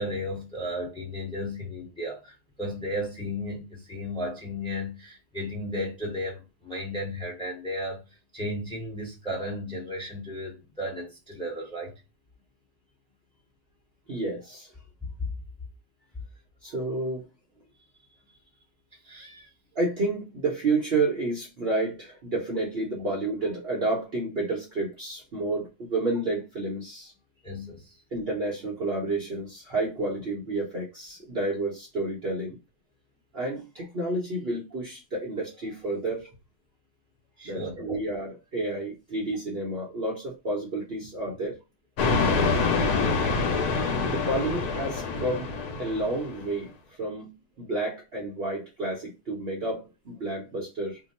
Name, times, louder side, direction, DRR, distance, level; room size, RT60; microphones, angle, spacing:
voice 1, 0.0-8.0 8.3-11.9 15.2-15.3 19.0-19.5 27.4-28.0 37.4-38.0 42.1-42.6, left 1 dB, 5° left, 1.0 m, -34 dB
voice 2, 14.1-14.7 16.6-17.2 19.7-27.1 28.1-32.6 33.3-36.3 37.4-41.6 44.0-45.5 45.8-46.7 47.0-47.3 47.6-51.0, right 2 dB, 45° right, 0.9 m, -30 dB
sound 1, 42.0-46.5, left 4 dB, 80° left, 1.2 m, -26 dB
2.9 x 2.2 x 4.1 m
omnidirectional pair, 1.7 m